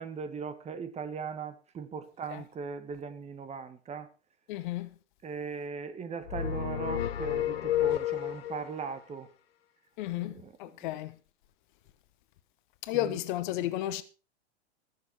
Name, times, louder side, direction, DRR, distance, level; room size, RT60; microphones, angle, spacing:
voice 1, 0.0-4.1 5.2-9.3 10.1-10.9 12.9-13.2 13.6-13.7, right 5 dB, 20° right, 1.4 m, -39 dB
voice 2, 4.5-4.9 10.0-11.2 12.8-14.0, left 14 dB, 45° left, 1.0 m, -33 dB
sound 1, 6.3-8.7, left 11 dB, 65° left, 1.3 m, -30 dB
20.5 x 7.0 x 4.3 m
figure-of-eight pair, 95°, 33 cm